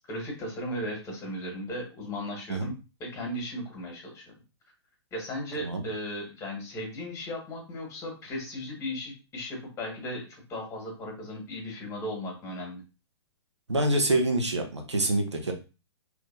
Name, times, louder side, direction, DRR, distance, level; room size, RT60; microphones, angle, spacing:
voice 1, 0.1-2.7 3.0-4.2 5.1-12.8, left 1 dB, 20° left, 0 dB, 1.7 m, -36 dB
voice 2, 13.7-15.5, right 1 dB, 85° right, 3 dB, 0.9 m, -26 dB
3.7 x 2.9 x 2.7 m, 0.31 s
figure-of-eight pair, 115°, 14 cm